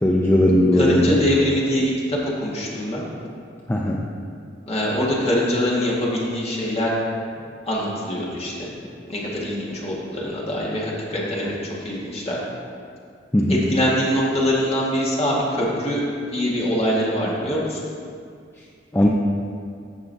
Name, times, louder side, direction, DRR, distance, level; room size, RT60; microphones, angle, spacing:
voice 1, 0.0-1.3 3.7-4.1 13.3-13.6 18.9-19.1, left 1 dB, 15° left, -2 dB, 0.4 m, -18 dB
voice 2, 0.8-3.0 4.7-6.9 7.7-8.7 9.1-12.4 13.5-16.0 16.3-17.8, equal, 35° left, -5 dB, 1.7 m, -23 dB
15.0 x 5.5 x 2.7 m, 2.3 s
head